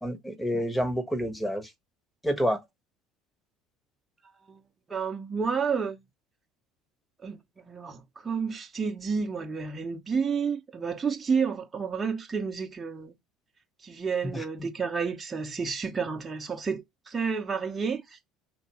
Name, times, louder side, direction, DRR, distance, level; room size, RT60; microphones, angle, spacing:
voice 1, 0.0-1.6 2.2-2.6 14.2-14.4, equal, 10° left, 1.3 m, -28 dB
voice 2, 4.9-6.0 7.2-7.4 7.7-13.1 13.8-18.2, right 5 dB, 25° right, 0.8 m, -30 dB
4.4 x 2.9 x 3.0 m
hypercardioid pair, 75°, 0 cm